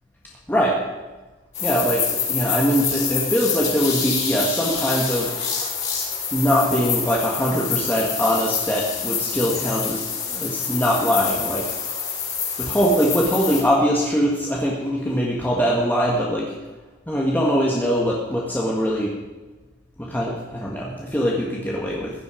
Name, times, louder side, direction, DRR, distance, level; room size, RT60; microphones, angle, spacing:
sound 1, 1.5-13.6, left 6 dB, 40° left, 4.1 m, -27 dB
voice 1, 1.6-5.3 6.3-10.0 10.3-11.7 12.6-16.5 17.1-19.1 20.0-22.1, equal, 10° left, -4 dB, 1.6 m, -22 dB
16.0 x 11.0 x 5.0 m, 1.2 s
head